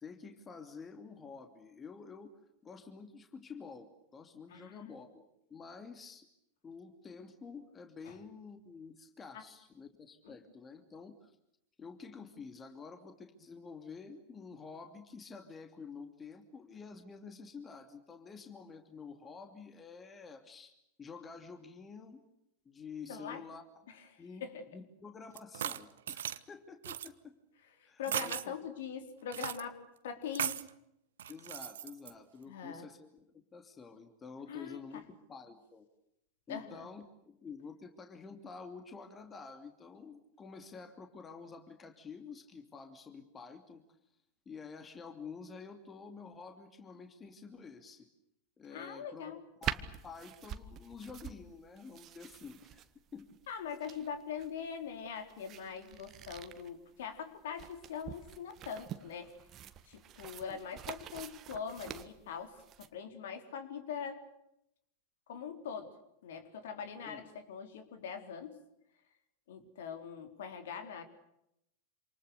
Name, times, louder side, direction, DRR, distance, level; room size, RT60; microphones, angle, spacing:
voice 1, 0.0-6.3 6.6-11.4 11.8-22.3 22.6-23.6 24.2-27.4 27.8-28.4 31.3-35.9 36.5-43.8 44.5-48.1 48.6-53.4 60.5-60.9 67.1-67.3, left 5 dB, 20° left, 7 dB, 2.8 m, -49 dB
voice 2, 4.5-4.9 8.0-8.1 9.3-9.5 10.2-10.3 23.1-23.4 23.9-24.7 27.8-30.6 32.5-32.9 34.5-35.0 36.5-36.9 48.7-49.4 53.5-59.4 59.9-64.2 65.3-65.9 66.2-68.6 69.5-71.0, left 7 dB, 55° left, 7 dB, 4.1 m, -42 dB
sound 1, 25.4-26.4 26.8-27.1 28.0-28.5 29.3-29.6 30.3-30.7 31.2-32.1, right 10 dB, 60° right, 1.3 m, -37 dB
sound 2, 49.6-62.9, right 10 dB, 30° right, 1.8 m, -46 dB
28.0 x 28.0 x 6.8 m, 0.81 s
figure-of-eight pair, 90°, 0 cm